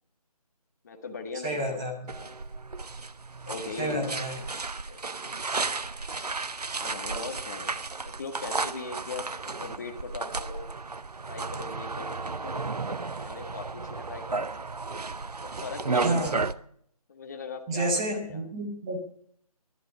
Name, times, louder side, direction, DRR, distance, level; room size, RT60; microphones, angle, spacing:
voice 1, 0.8-1.8 2.2-2.3 3.4-4.2 4.9-5.0 6.7-9.3 9.5-10.7 11.2-14.5 15.4-16.4 17.1-18.4, left 4 dB, 25° left, 5 dB, 1.4 m, -40 dB
voice 2, 1.4-2.1 3.8-4.4 16.0-16.4 17.7-19.0, right 1 dB, 10° right, 1 dB, 0.7 m, -30 dB
sound 1, 2.1-16.5, right 3 dB, 90° right, 0.7 m, -33 dB
17.0 x 11.0 x 5.4 m, 0.65 s
figure-of-eight pair, 160°, 20 cm